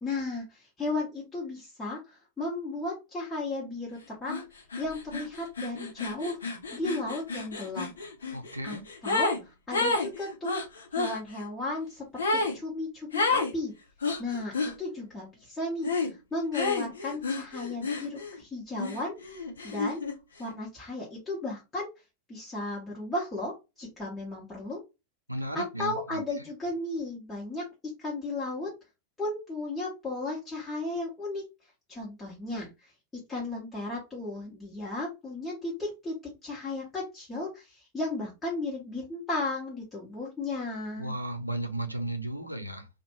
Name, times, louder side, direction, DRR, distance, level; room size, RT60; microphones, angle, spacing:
voice 1, 0.0-4.4 4.8-6.4 6.7-7.9 8.6-8.8 9.0-10.6 10.9-13.7 14.2-19.1 19.6-20.0 20.4-21.9 22.3-24.8 25.5-27.7 28.0-28.7 29.2-31.4 31.9-32.7 33.3-36.1 36.4-41.1, left 2 dB, 15° left, 0.9 m, -35 dB
sound 1, 4.3-4.4 4.7-9.4 9.7-11.2 12.2-12.6 13.1-13.5 14.0-14.7 15.8-16.1 16.5-18.4 18.8-20.2, left 3 dB, 70° left, 0.6 m, -30 dB
voice 2, 8.3-8.9 25.3-26.5 41.0-42.9, right 1 dB, 90° right, 0.5 m, -35 dB
2.5 x 2.1 x 2.8 m
figure-of-eight pair, 90°, 0 cm